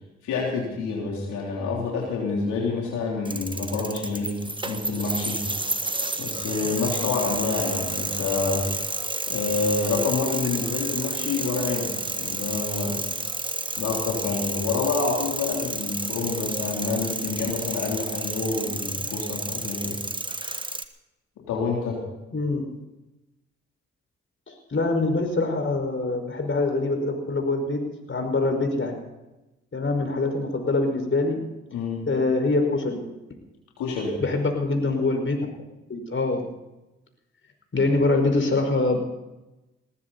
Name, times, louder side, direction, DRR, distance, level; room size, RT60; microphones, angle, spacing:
voice 1, 0.2-5.5 6.2-8.7 9.3-13.0 13.8-20.0 21.4-22.1 31.7-32.1 33.8-34.2, left 4 dB, 90° left, -3 dB, 3.4 m, -28 dB
sound 1, 3.2-20.8, right 2 dB, 15° right, 1.5 m, -31 dB
voice 2, 22.3-22.8 24.5-29.0 29.7-31.5 32.1-33.1 34.2-35.5 35.9-36.5 37.7-39.0, left 2 dB, 45° left, 4 dB, 5.3 m, -24 dB
19.5 x 15.0 x 4.2 m, 0.98 s
supercardioid pair, 45°, 29 cm